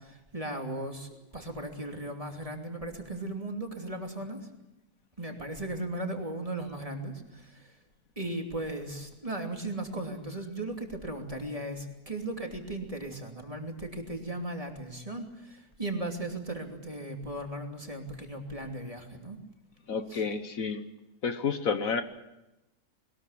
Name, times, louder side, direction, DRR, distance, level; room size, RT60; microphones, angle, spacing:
voice 1, 0.0-4.5 5.2-7.8 8.2-19.4 20.1-20.2, right 1 dB, 20° right, 3 dB, 2.9 m, -37 dB
voice 2, 19.9-20.8 21.2-22.0, left 5 dB, 65° left, 9 dB, 1.5 m, -30 dB
21.5 x 20.0 x 8.6 m, 0.94 s
omnidirectional pair, 1.6 m